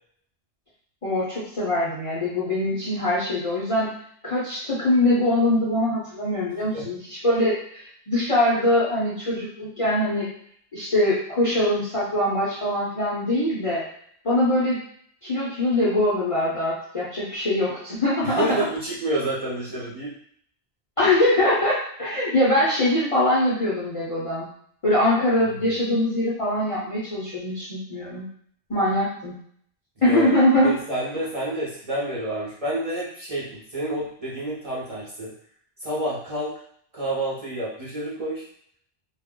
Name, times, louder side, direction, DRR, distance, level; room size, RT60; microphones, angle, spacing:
voice 1, 1.0-3.9 4.2-10.3 10.7-13.8 14.2-14.8 15.2-18.4 21.0-24.5 24.8-28.3 28.7-29.3 30.0-30.7, left 1 dB, 35° left, -8 dB, 0.6 m, -22 dB
voice 2, 18.2-20.1 25.5-25.6 30.0-30.3 30.6-35.3 35.8-36.5 36.9-38.5, right 1 dB, 35° right, -8 dB, 0.8 m, -29 dB
2.4 x 2.1 x 3.6 m, 0.63 s
omnidirectional pair, 1.1 m